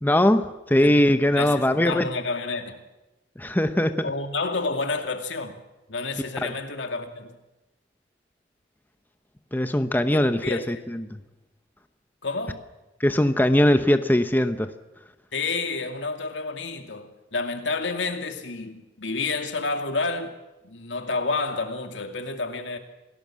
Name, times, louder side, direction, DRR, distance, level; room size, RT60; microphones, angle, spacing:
voice 1, 0.0-2.1 3.4-4.1 9.5-11.2 13.0-14.7, left 1 dB, 10° left, 0.9 m, -21 dB
voice 2, 0.8-2.8 4.0-5.6 5.9-7.4 10.1-10.8 12.2-12.6 15.3-20.3 20.6-22.8, left 3 dB, 80° left, 2.5 m, -30 dB
27.5 x 17.5 x 7.6 m
head